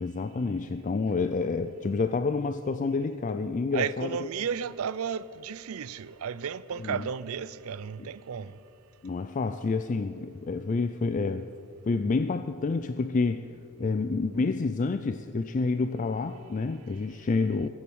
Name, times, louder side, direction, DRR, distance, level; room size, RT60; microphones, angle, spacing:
voice 1, 0.0-4.3 6.8-7.1 8.0-8.1 9.0-11.5 11.8-13.5 13.8-17.7, left 4 dB, 35° left, 0.4 m, -28 dB
voice 2, 3.7-8.5, right 7 dB, 75° right, 0.4 m, -33 dB
22.0 x 8.7 x 6.3 m
head